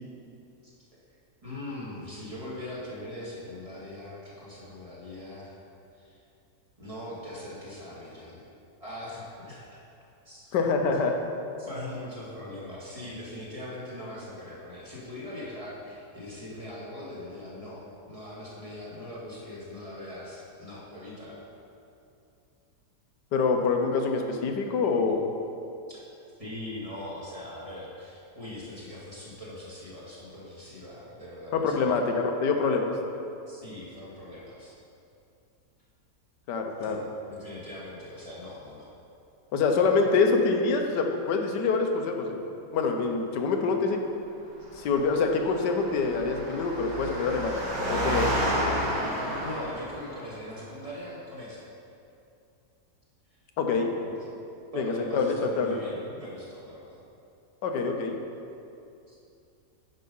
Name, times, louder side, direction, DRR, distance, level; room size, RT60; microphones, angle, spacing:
voice 1, 1.4-5.5 6.0-6.2 6.8-8.4 8.8-9.8 10.2-10.5 10.8-10.9 11.6-21.4 25.9-26.0 26.4-31.9 33.5-34.7 36.8-37.0 37.3-38.9 49.4-51.7 54.0-54.1 54.7-57.0 59.1-59.2, left 1 dB, 20° right, -8 dB, 2.0 m, -41 dB
voice 2, 10.5-11.2 23.3-25.2 31.5-32.9 36.5-37.0 39.5-42.4 42.7-44.0 44.8-47.5 47.8-48.3 53.6-53.9 54.7-55.8 57.6-58.2, left 4 dB, 85° left, 3 dB, 1.4 m, -25 dB
Engine, 44.6-50.3, right 1 dB, 80° right, 2.0 m, -31 dB
9.2 x 5.5 x 5.4 m, 2.6 s
omnidirectional pair, 1.8 m